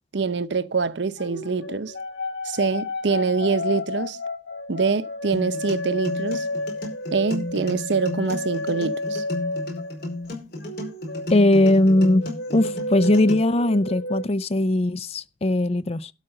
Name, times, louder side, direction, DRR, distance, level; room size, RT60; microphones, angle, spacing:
voice 1, 0.1-1.9 2.4-4.2 4.7-6.5 7.1-9.2, right 4 dB, 70° right, 0.7 m, -25 dB
sound 1, 1.2-10.3 10.6-14.2, left 2 dB, 70° left, 1.6 m, -31 dB
sound 2, 5.3-13.3, left 1 dB, 55° left, 5.0 m, -33 dB
voice 2, 11.3-16.1, left 1 dB, 35° left, 0.5 m, -20 dB
12.5 x 4.9 x 6.6 m
head